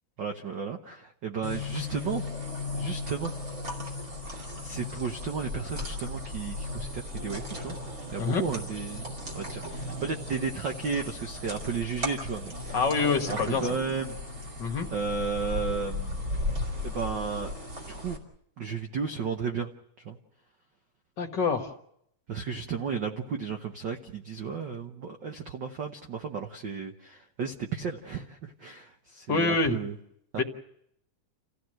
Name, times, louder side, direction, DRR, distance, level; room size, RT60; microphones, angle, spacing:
voice 1, 0.2-2.2 2.7-3.3 4.4-7.8 8.1-12.8 13.3-14.2 14.9-16.2 16.8-17.5 17.9-18.2 18.6-19.7 20.0-20.2 22.3-29.9, right 5 dB, 75° right, 5 dB, 1.0 m, -33 dB
sound 1, 1.4-18.2, left 2 dB, 30° right, 2.9 m, -36 dB
voice 2, 12.7-13.7 14.6-14.9 21.2-21.7 29.3-29.8 30.4-30.5, left 4 dB, 45° left, 4 dB, 1.6 m, -26 dB
28.5 x 15.5 x 7.7 m, 0.75 s
omnidirectional pair, 3.6 m